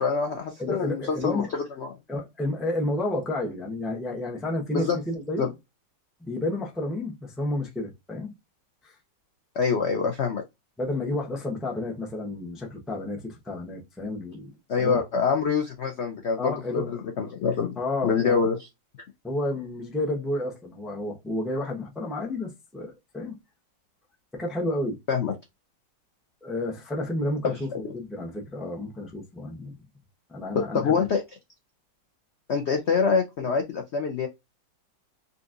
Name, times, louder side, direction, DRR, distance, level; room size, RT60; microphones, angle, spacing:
voice 1, 0.0-1.9 4.7-5.0 5.4-5.5 9.6-10.4 14.7-18.6 25.1-25.3 30.5-31.2 32.5-34.3, left 5 dB, 85° left, 0.6 m, -25 dB
voice 2, 0.6-1.5 2.1-5.5 6.2-8.3 8.8-9.0 10.8-15.0 16.4-17.0 17.8-18.4 19.2-23.3 24.3-25.0 26.4-29.7 30.3-31.0, left 1 dB, ahead, 0.4 m, -31 dB
4.0 x 2.6 x 2.4 m
omnidirectional pair, 2.0 m